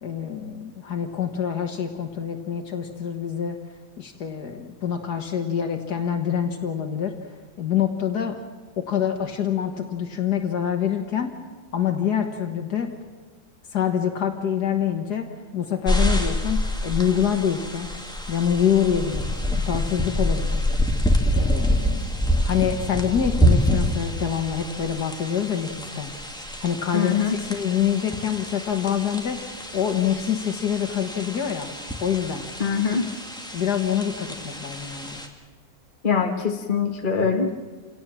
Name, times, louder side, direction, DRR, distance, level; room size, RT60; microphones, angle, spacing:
voice 1, 0.0-3.6 4.0-7.2 7.6-8.4 8.8-11.3 11.7-12.9 13.7-17.9 18.3-20.6 21.3-26.1 26.6-31.7 32.0-32.4 33.5-35.2, left 8 dB, 70° left, 5 dB, 2.0 m, -26 dB
sound 1, 15.8-35.3, equal, ahead, 1.9 m, -26 dB
voice 2, 26.9-27.4 32.6-33.1 36.0-37.5, left 6 dB, 30° left, 4 dB, 1.4 m, -23 dB
27.5 x 17.5 x 7.5 m, 1.4 s
omnidirectional pair, 1.8 m